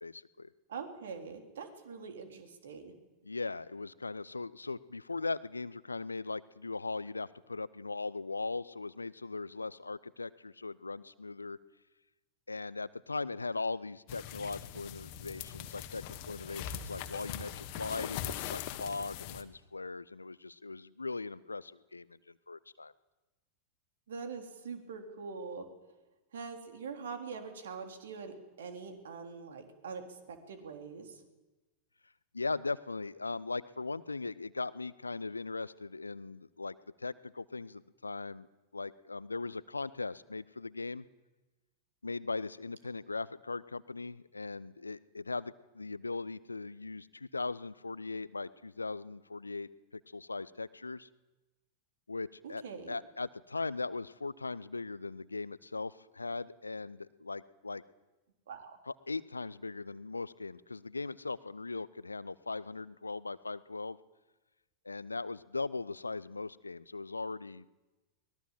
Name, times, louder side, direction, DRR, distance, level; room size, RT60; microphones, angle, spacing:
voice 1, 0.0-0.5 3.2-11.6 12.5-22.9 32.3-38.5 38.7-41.0 42.0-51.1 52.1-57.8 58.9-64.0 64.8-67.7, left 3 dB, 80° left, 20 dB, 0.7 m, -39 dB
voice 2, 0.7-2.9 24.1-25.7 26.3-31.2 52.4-53.0 58.5-58.8, right 5 dB, 65° right, 6 dB, 3.8 m, -43 dB
sound 1, 14.1-19.4, left 10 dB, 45° left, 1.7 m, -41 dB
23.5 x 20.5 x 7.5 m, 1.1 s
figure-of-eight pair, 90°, 0 cm